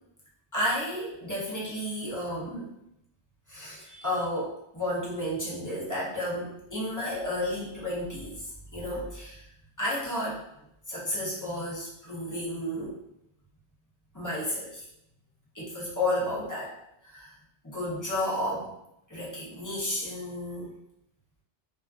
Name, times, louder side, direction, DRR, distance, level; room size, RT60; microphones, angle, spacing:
voice 1, 0.5-2.7 3.5-9.4 9.8-10.4 10.9-13.0 14.1-14.9 15.5-16.8 17.0-17.3 17.6-18.7 19.1-20.8, left 1 dB, 20° left, -7 dB, 0.6 m, -32 dB
2.4 x 2.2 x 2.3 m, 0.79 s
omnidirectional pair, 1.0 m